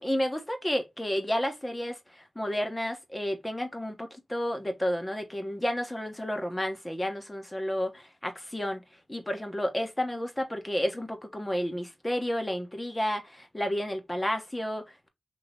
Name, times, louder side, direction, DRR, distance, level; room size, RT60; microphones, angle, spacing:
voice 1, 0.0-8.8 9.1-15.1, equal, 15° left, 1.4 m, -31 dB
3.8 x 3.1 x 4.2 m
cardioid pair, 70°, 0 cm